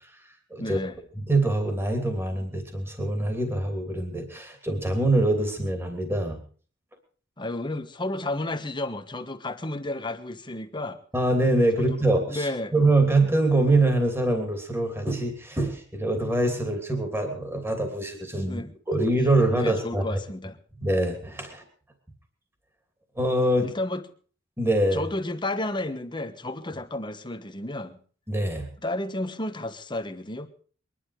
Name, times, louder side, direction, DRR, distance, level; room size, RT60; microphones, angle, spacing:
voice 1, 0.6-1.0 7.4-11.0 11.8-12.7 18.4-18.7 19.5-20.6 23.6-24.0 24.9-28.0 28.8-30.5, left 1 dB, 25° left, 8 dB, 1.4 m, -32 dB
voice 2, 1.3-6.4 11.1-18.6 18.9-20.0 20.8-21.6 23.2-23.7 24.6-25.0 28.3-28.7, right 2 dB, 15° right, 5 dB, 2.9 m, -24 dB
22.5 x 11.5 x 4.9 m, 0.43 s
head